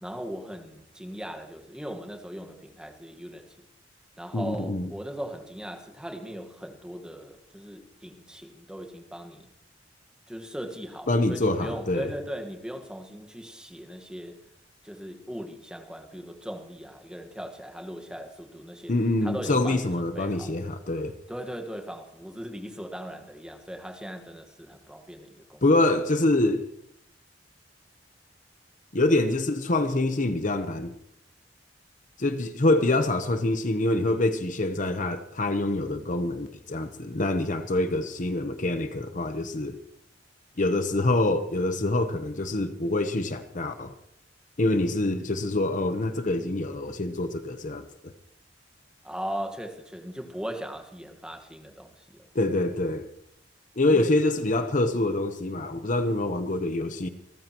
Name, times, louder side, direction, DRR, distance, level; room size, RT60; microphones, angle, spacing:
voice 1, 0.0-3.5 4.2-9.5 10.3-14.4 14.8-18.9 19.2-20.6 21.3-25.6 49.0-52.3 53.9-54.2, equal, 5° right, 1.5 m, -39 dB
voice 2, 4.3-4.9 11.1-12.1 18.9-21.1 25.6-26.6 28.9-30.9 32.2-39.8 40.6-43.9 44.6-48.1 52.3-53.1 53.8-57.1, left 2 dB, 45° left, 0.9 m, -25 dB
27.5 x 14.5 x 3.0 m
head